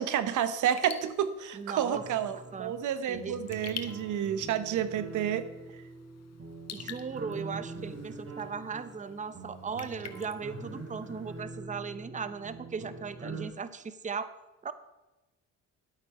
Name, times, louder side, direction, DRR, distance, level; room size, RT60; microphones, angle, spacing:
voice 1, 0.0-5.8, right 9 dB, 80° right, 13 dB, 0.9 m, -30 dB
Raindrop / Drip, 0.6-11.4, left 8 dB, 55° left, 1.2 m, -49 dB
voice 2, 1.5-2.0 2.5-2.7 3.1-3.4 6.7-14.3 14.6-14.7, right 5 dB, 25° right, 13 dB, 0.8 m, -37 dB
sound 1, 1.9-13.5, right 3 dB, 50° right, 2.7 m, -44 dB
11.5 x 8.6 x 5.5 m, 1.1 s
cardioid pair, 90°, 30 cm